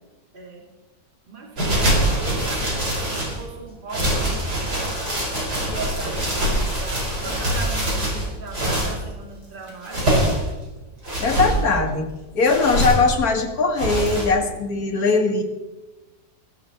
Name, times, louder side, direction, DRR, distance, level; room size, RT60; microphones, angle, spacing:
voice 1, 0.3-0.6 1.3-4.7 5.6-10.1, right 3 dB, 30° right, -1 dB, 2.6 m, -38 dB
sound 1, 1.6-3.4 3.9-9.0 9.7-10.5 11.0-11.6 12.4-13.1 13.8-14.3, right 1 dB, 60° right, 6.0 m, -23 dB
voice 2, 11.2-12.1 12.3-15.4, left 3 dB, 55° left, 3 dB, 2.3 m, -20 dB
16.5 x 15.5 x 4.3 m, 1.1 s
omnidirectional pair, 1.9 m